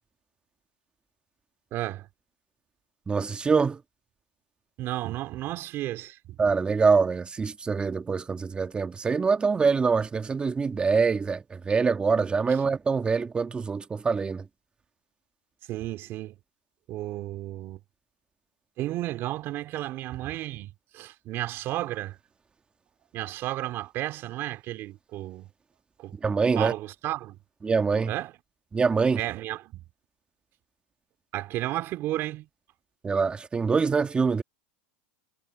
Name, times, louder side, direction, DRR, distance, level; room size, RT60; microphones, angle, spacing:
voice 1, 1.7-2.1 4.8-6.4 15.7-16.3 16.9-17.8 18.8-22.2 23.1-25.5 26.0-26.2 26.6-27.4 28.1-28.3 29.2-29.8 31.3-32.5, right 15 dB, 45° right, 2.8 m, -33 dB
voice 2, 3.1-3.8 6.4-14.5 26.2-26.7 27.6-28.1 28.7-29.2 33.0-34.4, right 5 dB, 15° right, 1.9 m, -24 dB
supercardioid pair, 115°, 6 cm